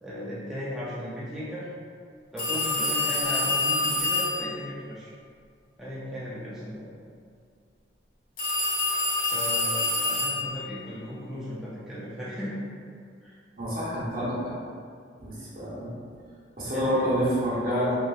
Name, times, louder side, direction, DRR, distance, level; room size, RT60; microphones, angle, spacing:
voice 1, 0.0-1.7 2.3-5.1 5.8-6.9 9.3-12.6 13.2-13.4 16.7-17.1, equal, ahead, -10 dB, 0.4 m, -36 dB
sound 1, 2.4-4.5 8.4-10.6, left 2 dB, 55° left, 0.9 m, -26 dB
voice 2, 13.6-14.5 15.2-15.9 16.6-18.0, equal, 55° right, -9 dB, 1.0 m, -27 dB
3.0 x 2.6 x 2.3 m, 2.2 s
head